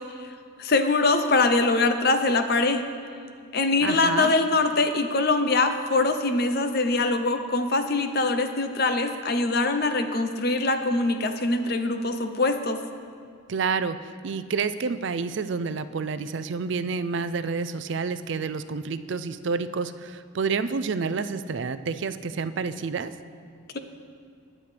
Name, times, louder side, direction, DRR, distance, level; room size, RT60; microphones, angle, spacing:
voice 1, 0.6-2.8 3.5-12.8, left 3 dB, 50° left, 8 dB, 0.7 m, -23 dB
voice 2, 3.8-4.3 13.5-23.1, right 5 dB, 60° right, 12 dB, 0.4 m, -29 dB
20.5 x 8.6 x 3.3 m, 2.3 s
head